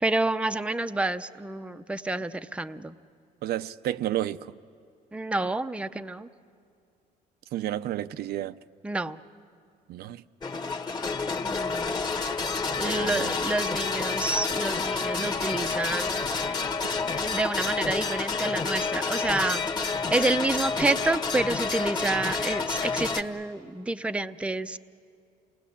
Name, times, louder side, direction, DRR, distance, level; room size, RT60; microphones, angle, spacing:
voice 1, 0.0-2.9 5.1-6.3 8.8-9.2 11.4-12.0 12.8-16.6 17.1-24.8, right 2 dB, 5° right, 0.6 m, -29 dB
voice 2, 3.4-4.5 7.5-8.6 9.9-10.2 12.8-13.4, right 13 dB, 70° right, 0.6 m, -31 dB
sound 1, 10.4-23.2, left 4 dB, 25° left, 1.4 m, -29 dB
28.5 x 19.5 x 8.5 m
cardioid pair, 110°, 17 cm